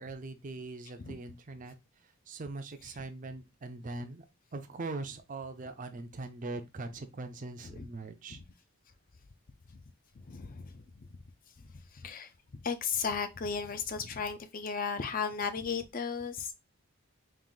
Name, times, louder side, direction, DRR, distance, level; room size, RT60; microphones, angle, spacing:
voice 1, 0.0-1.7 2.3-4.3 4.5-8.4, right 2 dB, 35° right, 0.5 m, -41 dB
voice 2, 10.1-11.1 11.6-16.5, left 6 dB, 40° left, 0.5 m, -36 dB
3.7 x 2.5 x 3.8 m
head